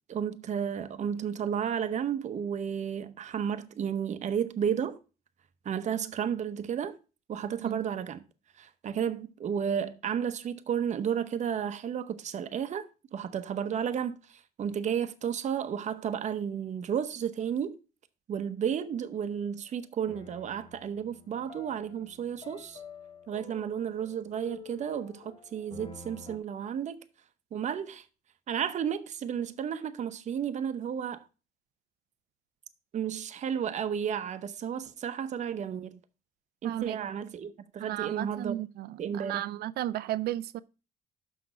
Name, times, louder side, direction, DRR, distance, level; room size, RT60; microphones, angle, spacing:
voice 1, 0.1-5.0 5.6-7.0 7.3-8.2 8.6-17.8 18.3-22.8 23.3-27.0 27.5-28.0 28.5-31.2 32.9-36.0 36.6-38.6 39.0-39.5, right 8 dB, 45° right, 0.8 m, -32 dB
sound 1, 18.9-19.3 20.1-26.4, left 5 dB, 35° left, 1.2 m, -50 dB
voice 2, 36.6-37.0 37.8-40.6, right 14 dB, 70° right, 0.5 m, -34 dB
6.1 x 6.0 x 6.2 m
cardioid pair, 110°, 17 cm